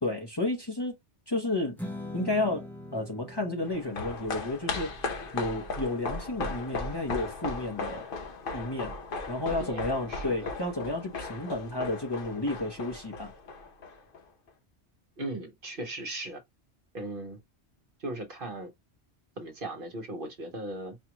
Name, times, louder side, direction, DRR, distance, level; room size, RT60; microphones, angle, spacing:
voice 1, 0.0-0.9 1.3-1.8 2.1-4.9 5.3-8.1 8.5-9.0 9.3-13.3, left 2 dB, 25° left, 0.9 m, -32 dB
Strum, 1.8-8.1, left 1 dB, ahead, 0.5 m, -45 dB
sound 1, 3.6-14.2 14.5-14.6, left 3 dB, 55° left, 0.9 m, -37 dB
voice 2, 9.4-10.5 15.2-16.4 16.9-17.4 18.0-18.7 19.4-21.0, right 1 dB, 55° right, 1.1 m, -38 dB
4.4 x 2.4 x 2.9 m
omnidirectional pair, 1.2 m